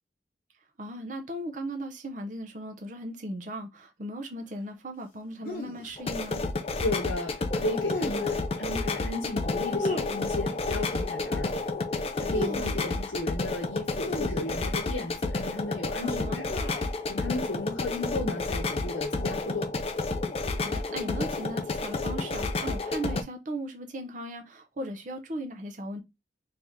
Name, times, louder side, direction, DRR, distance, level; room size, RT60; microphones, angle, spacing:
voice 1, 0.8-6.4 12.4-12.8 16.0-16.4 20.6-26.0, right 1 dB, 40° right, 0.6 m, -37 dB
sound 1, 5.4-5.9 7.8-8.5 9.8-10.6 12.1-13.1 13.9-15.1 16.5-17.0 17.8-18.1 19.3-19.9 21.1-21.4, left 1 dB, 50° left, 1.0 m, -37 dB
sound 2, 6.0-23.2, left 3 dB, 30° left, 0.4 m, -30 dB
voice 2, 6.8-11.6 12.2-16.5 17.1-19.7, left 2 dB, 75° left, 0.8 m, -34 dB
3.3 x 2.7 x 3.5 m
head